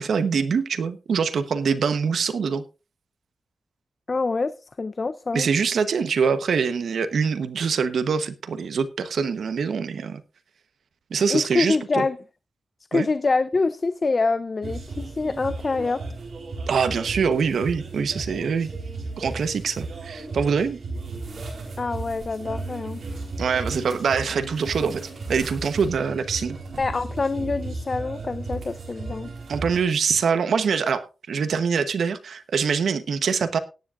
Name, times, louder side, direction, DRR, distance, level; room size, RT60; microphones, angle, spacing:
voice 1, 0.0-2.6 5.3-10.2 11.1-12.0 12.9-13.1 16.7-18.7 19.2-20.8 23.4-25.0 25.3-26.6 29.5-33.6, right 6 dB, 80° right, 1.0 m, -24 dB
voice 2, 4.1-5.5 11.3-12.2 12.9-16.0 21.8-23.0 26.8-29.3, left 3 dB, 35° left, 0.5 m, -25 dB
sound 1, 14.6-29.8, right 3 dB, 65° right, 3.8 m, -35 dB
18.0 x 10.0 x 2.5 m
wide cardioid pair, 140°, 0 cm